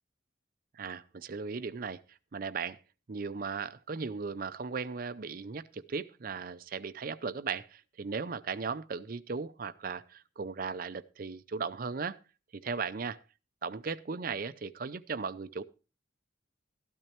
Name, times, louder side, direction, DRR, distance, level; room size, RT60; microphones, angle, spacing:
voice 1, 0.7-2.8 3.1-12.2 12.5-13.2 13.6-15.6, right 5 dB, 50° right, 0.5 m, -37 dB
13.0 x 12.5 x 2.9 m
head